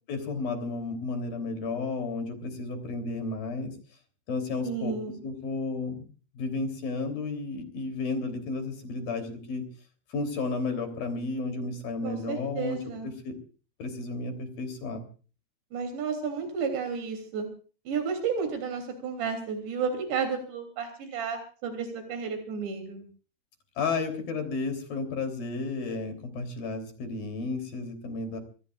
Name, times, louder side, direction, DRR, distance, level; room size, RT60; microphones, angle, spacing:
voice 1, 0.1-3.7 4.3-4.9 5.2-6.0 6.3-9.6 10.1-12.8 13.2-13.3 13.8-15.0 23.8-28.4, left 3 dB, 60° left, 6 dB, 5.0 m, -32 dB
voice 2, 4.6-5.2 12.0-13.1 15.7-17.5 17.9-23.0, right 5 dB, 90° right, 5 dB, 5.3 m, -32 dB
26.0 x 21.0 x 2.5 m, 0.39 s
omnidirectional pair, 4.8 m